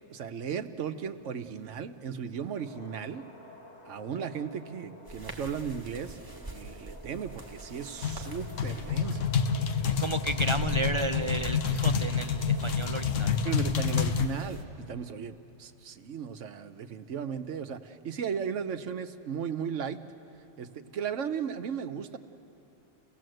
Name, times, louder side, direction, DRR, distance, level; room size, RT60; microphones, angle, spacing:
voice 1, 0.1-3.3 3.9-9.3 13.4-20.0 20.6-22.2, right 7 dB, 80° right, 9 dB, 1.2 m, -36 dB
sound 1, 2.3-14.8, left 1 dB, 35° left, 3.0 m, -50 dB
sound 2, 5.0-14.6, right 2 dB, 15° right, 1.8 m, -45 dB
sound 3, 8.0-14.3, left 6 dB, 80° left, 1.2 m, -28 dB
voice 2, 9.8-13.3, right 2 dB, 50° right, 9 dB, 0.3 m, -33 dB
29.5 x 17.0 x 7.8 m, 2.8 s
omnidirectional pair, 1.3 m